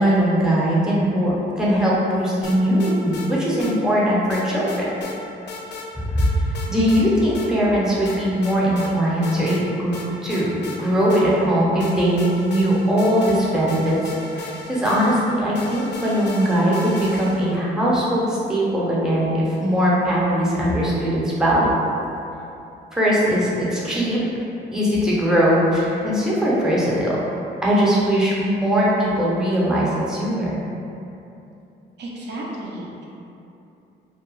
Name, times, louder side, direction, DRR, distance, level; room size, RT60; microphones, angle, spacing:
voice 1, 0.0-4.8 6.0-21.7 22.9-24.2 24.7-27.2 27.6-30.6, equal, 5° right, -6 dB, 0.6 m, -20 dB
sound 1, 2.4-3.3 3.6-3.7 4.3-5.2 5.5-5.9 6.2-7.0 7.3-7.5 8.0-8.9 9.2-9.6 9.9-11.5 11.8-17.6, left 3 dB, 60° left, 0.4 m, -36 dB
voice 2, 32.0-33.0, right 1 dB, 60° right, -4 dB, 0.5 m, -33 dB
2.2 x 2.1 x 3.0 m, 2.8 s
cardioid pair, 90°, 20 cm